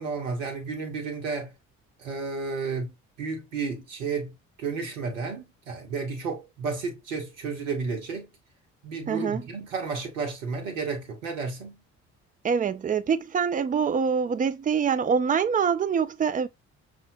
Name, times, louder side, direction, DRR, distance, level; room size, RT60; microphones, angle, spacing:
voice 1, 0.0-1.5 2.0-2.9 3.2-8.3 8.8-11.8, right 4 dB, 85° right, 1.0 m, -32 dB
voice 2, 9.1-9.4 12.4-16.5, right 6 dB, 20° right, 0.5 m, -25 dB
5.5 x 2.5 x 2.6 m
hypercardioid pair, 45°, 38 cm